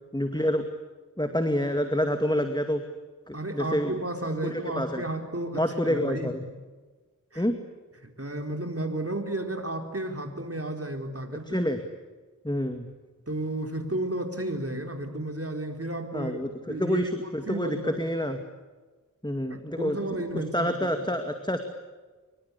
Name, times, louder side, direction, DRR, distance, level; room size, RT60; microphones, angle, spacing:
voice 1, 0.1-0.6 1.2-2.8 3.3-3.9 4.4-5.0 5.5-6.4 7.4-7.5 11.5-11.8 12.4-12.9 16.1-18.4 19.2-20.0 20.3-21.6, equal, 15° left, 6 dB, 2.3 m, -28 dB
voice 2, 3.3-6.5 7.3-7.4 8.0-11.6 13.3-18.0 19.5-21.0, right 1 dB, 45° right, 5 dB, 4.4 m, -33 dB
26.5 x 24.0 x 8.4 m, 1.3 s
wide cardioid pair, 45°, 33 cm